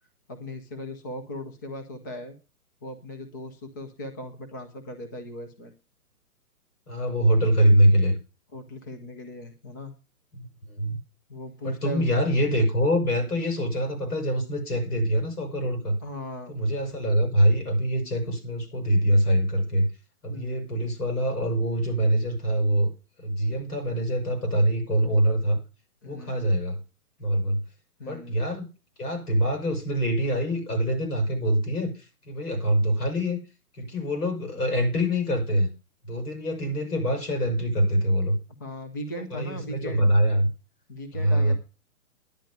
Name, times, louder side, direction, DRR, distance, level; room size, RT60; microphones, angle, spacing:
voice 1, 0.3-2.3 2.8-5.7 8.5-9.9 11.3-12.0 16.0-16.5 20.3-20.7 26.0-26.5 28.0-28.5 38.6-40.1 40.9-41.5, left 1 dB, 15° left, 7 dB, 0.6 m, -38 dB
voice 2, 6.9-8.1 10.3-11.0 11.6-16.0 16.5-19.9 20.2-22.9 23.2-25.6 26.1-26.8 27.2-27.6 28.1-28.7 29.0-33.4 33.8-35.7 36.0-38.4 39.3-40.5 41.1-41.5, equal, 90° left, 3 dB, 7.2 m, -24 dB
10.5 x 8.8 x 6.6 m, 0.32 s
hypercardioid pair, 160°, 45 cm